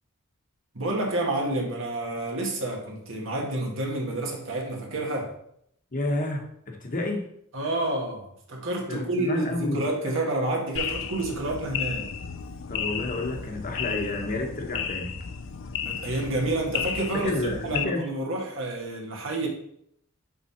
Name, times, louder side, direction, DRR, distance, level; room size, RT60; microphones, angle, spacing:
voice 1, 0.7-5.4 7.5-12.1 15.8-19.5, right 2 dB, 65° right, 0 dB, 1.6 m, -29 dB
voice 2, 5.9-7.2 8.9-9.8 12.7-15.2 17.2-18.0, left 2 dB, 40° left, 3 dB, 1.1 m, -30 dB
sound 1, 10.8-17.8, left 7 dB, 60° left, 0.5 m, -33 dB
5.6 x 5.6 x 4.3 m, 0.72 s
head